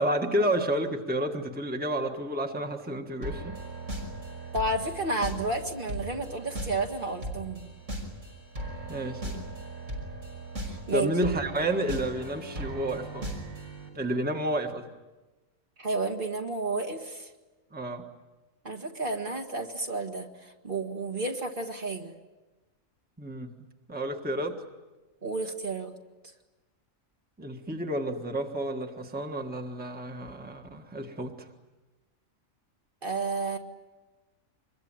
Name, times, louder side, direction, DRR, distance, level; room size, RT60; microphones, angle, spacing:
voice 1, 0.0-3.6 8.9-9.5 10.9-13.3 13.9-14.9 17.7-18.1 23.2-23.5 23.9-24.6 27.4-31.5, right 1 dB, 5° right, 3 dB, 1.5 m, -30 dB
sound 1, 3.2-13.9, right 1 dB, 75° right, 6.2 m, -38 dB
voice 2, 4.5-7.7 10.6-11.1 15.8-17.3 18.6-22.1 25.2-26.0 33.0-33.6, right 2 dB, 40° right, 2 dB, 2.0 m, -31 dB
26.0 x 22.0 x 9.0 m, 1.2 s
omnidirectional pair, 1.4 m